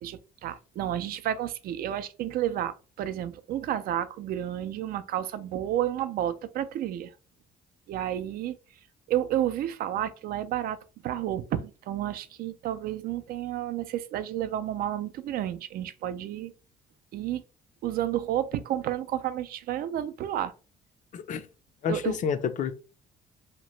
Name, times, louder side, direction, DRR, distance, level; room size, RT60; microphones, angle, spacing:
voice 1, 0.0-7.1 7.9-8.6 9.1-16.5 17.1-17.4 17.8-20.5 21.9-22.2, right 11 dB, 60° right, 0.4 m, -31 dB
voice 2, 21.1-21.5 21.8-22.7, left 7 dB, 50° left, 0.5 m, -29 dB
2.8 x 2.1 x 3.1 m
cardioid pair, 110°, 17 cm